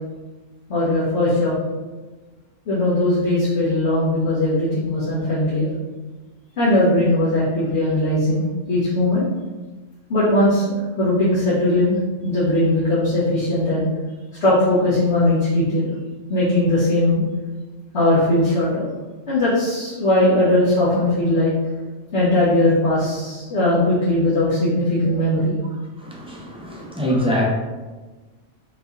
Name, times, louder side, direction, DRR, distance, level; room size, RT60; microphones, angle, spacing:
voice 1, 0.7-1.5 2.7-5.7 6.6-8.4 8.7-9.2 10.1-13.8 14.4-15.9 16.3-17.2 17.9-18.9 19.3-21.5 22.1-25.5 26.7-26.8, left 1 dB, 60° left, -11 dB, 1.5 m, -19 dB
voice 2, 26.0-27.4, equal, 5° right, -3 dB, 0.5 m, -24 dB
5.4 x 2.9 x 2.6 m, 1.3 s
omnidirectional pair, 1.3 m